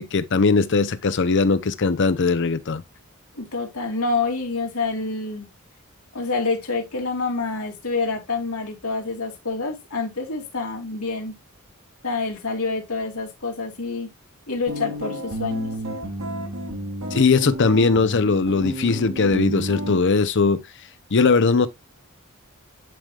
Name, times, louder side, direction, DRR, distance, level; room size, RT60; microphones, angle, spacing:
voice 1, 0.0-2.8 17.1-20.6 21.1-21.7, left 4 dB, 55° left, 0.7 m, -19 dB
voice 2, 3.3-5.5 6.1-11.3 12.0-14.1 14.5-15.7, left 3 dB, 80° left, 2.8 m, -27 dB
sound 1, 14.7-20.0, right 1 dB, 65° right, 2.6 m, -31 dB
11.0 x 5.0 x 2.3 m
head